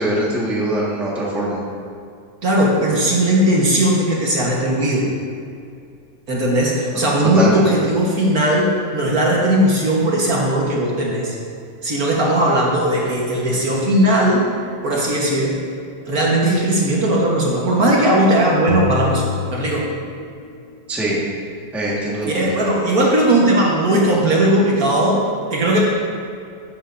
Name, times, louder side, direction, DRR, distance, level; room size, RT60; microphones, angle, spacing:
voice 1, 0.0-1.6 7.3-7.7 20.9-21.2 21.7-22.5, right 1 dB, ahead, -5 dB, 1.2 m, -22 dB
voice 2, 2.4-5.1 6.3-11.3 11.8-14.5 14.8-15.6 16.1-19.9 22.3-25.8, right 1 dB, 50° right, -3 dB, 1.6 m, -17 dB
sound 1, 18.7-20.5, left 5 dB, 85° right, 1.8 m, -27 dB
12.5 x 8.5 x 2.6 m, 2.4 s
omnidirectional pair, 2.1 m